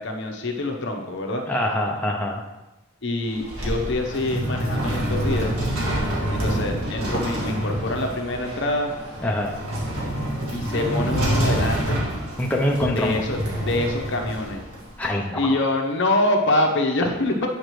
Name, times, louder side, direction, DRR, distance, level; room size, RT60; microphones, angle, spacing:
voice 1, 0.0-1.4 3.0-5.5 6.3-8.9 10.5-12.1 12.9-14.6 15.4-17.5, left 2 dB, 55° left, 2 dB, 0.9 m, -25 dB
voice 2, 1.5-2.4 9.2-9.6 12.4-13.2 15.0-15.5, left 1 dB, 5° left, -2 dB, 0.5 m, -24 dB
sound 1, 3.2-15.1, equal, 90° right, 1.9 m, -27 dB
8.6 x 5.1 x 3.2 m, 1.0 s
head